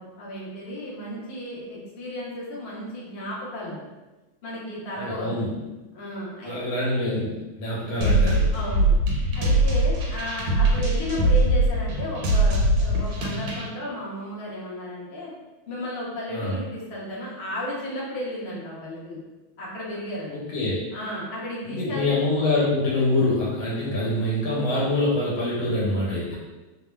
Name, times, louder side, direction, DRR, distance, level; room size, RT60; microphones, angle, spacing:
voice 1, 0.0-3.9 4.4-5.4 5.9-6.8 8.5-9.0 9.3-15.3 15.7-19.2 19.6-20.3 20.9-22.0, left 1 dB, 65° left, -6 dB, 0.6 m, -34 dB
voice 2, 5.0-5.5 6.4-8.5 16.3-16.6 20.3-20.8 21.6-26.3, left 1 dB, 85° left, -6 dB, 1.6 m, -25 dB
sound 1, 8.0-13.7, right 1 dB, 90° right, 1.4 m, -22 dB
3.4 x 2.0 x 2.2 m, 1.1 s
omnidirectional pair, 2.2 m